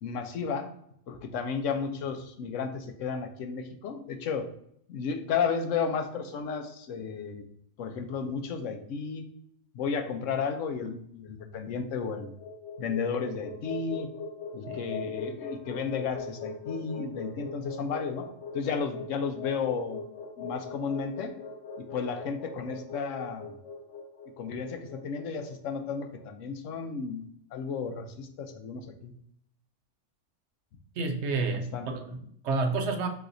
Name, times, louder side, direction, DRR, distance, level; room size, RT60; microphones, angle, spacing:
voice 1, 0.0-0.7 1.1-4.5 4.9-7.4 7.8-9.2 9.7-12.3 12.8-14.1 14.5-18.3 18.5-20.1 20.4-21.4 21.8-23.5 24.4-27.2 27.5-29.1 31.7-31.9, left 5 dB, 80° left, 7 dB, 1.0 m, -33 dB
sound 1, 12.1-26.3, left 4 dB, 65° left, 1.4 m, -40 dB
voice 2, 31.0-33.1, right 3 dB, 70° right, 5 dB, 0.9 m, -30 dB
4.8 x 4.1 x 2.5 m, 0.68 s
omnidirectional pair, 1.3 m